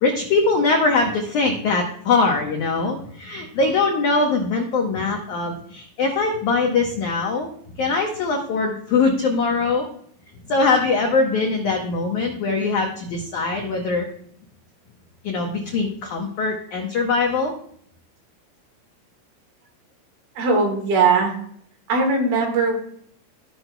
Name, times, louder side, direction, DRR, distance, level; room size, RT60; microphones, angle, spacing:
voice 1, 0.0-7.5 7.8-9.9 10.5-14.1 15.2-17.5, left 3 dB, 85° left, 1 dB, 1.7 m, -22 dB
voice 2, 20.4-21.3 21.9-22.8, right 4 dB, 65° right, 2 dB, 3.3 m, -19 dB
16.5 x 5.9 x 2.2 m, 0.64 s
omnidirectional pair, 5.0 m